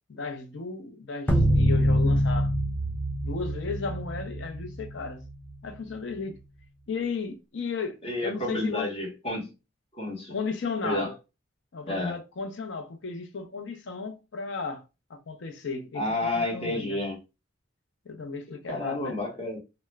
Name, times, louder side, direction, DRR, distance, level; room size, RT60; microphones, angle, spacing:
voice 1, 0.1-2.5 3.2-5.2 5.6-6.4 6.9-8.9 10.3-11.1 11.7-14.8 15.1-16.1 16.3-17.0 18.1-19.1, left 4 dB, 65° left, 0.5 m, -34 dB
sound 1, 1.3-5.7, equal, 10° left, 0.6 m, -25 dB
voice 2, 8.0-9.5 9.9-10.3 10.8-11.1 11.9-12.2 15.9-17.2 18.7-19.6, left 1 dB, 30° left, 0.9 m, -30 dB
2.3 x 2.1 x 3.0 m
head